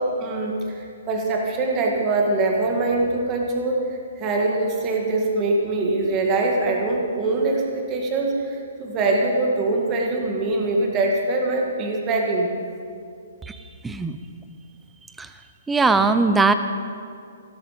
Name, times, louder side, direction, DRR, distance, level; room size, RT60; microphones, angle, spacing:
voice 1, 0.0-12.5, right 2 dB, 25° right, 0 dB, 2.0 m, -23 dB
voice 2, 13.8-14.2 15.2-15.3 15.7-16.5, right 3 dB, 5° right, 10 dB, 0.6 m, -19 dB
17.0 x 12.5 x 5.3 m, 2.3 s
hypercardioid pair, 155°, 0 cm